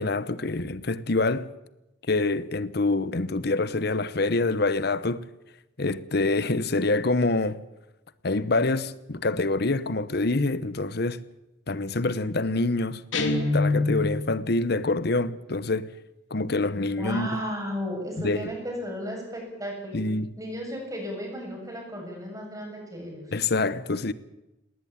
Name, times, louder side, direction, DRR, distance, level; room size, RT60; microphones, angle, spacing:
voice 1, 0.0-1.5 2.1-5.2 5.8-7.6 8.2-11.2 11.7-13.0 13.5-15.9 16.3-17.3 18.2-18.5 19.9-20.3 23.3-24.1, left 2 dB, 55° left, 1.0 m, -26 dB
Guitar, 13.1-14.3, left 2 dB, 80° left, 3.0 m, -24 dB
voice 2, 17.0-20.0 20.4-23.3, equal, 20° right, 7.8 m, -34 dB
19.5 x 19.0 x 8.9 m
head